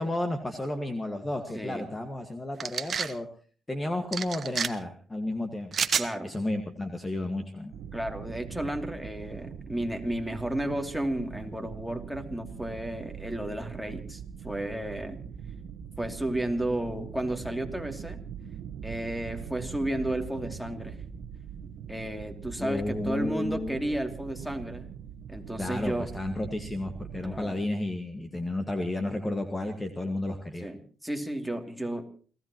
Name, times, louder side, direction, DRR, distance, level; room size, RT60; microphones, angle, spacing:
voice 1, 0.0-3.3 3.7-5.9 6.2-7.7 22.6-23.8 25.6-30.7, left 1 dB, 20° left, 6 dB, 1.8 m, -32 dB
voice 2, 1.5-1.9 5.8-6.3 7.9-15.2 16.0-18.2 18.8-20.9 21.9-24.9 25.3-26.1 27.2-27.6 30.6-32.0, right 1 dB, ahead, 3 dB, 2.8 m, -33 dB
sound 1, 2.6-3.1 4.1-4.7 5.7-6.1, right 6 dB, 45° right, 1.1 m, -28 dB
sound 2, 7.7-27.4, right 7 dB, 80° right, 1.3 m, -42 dB
29.0 x 16.0 x 3.0 m, 0.41 s
cardioid pair, 90°, 0 cm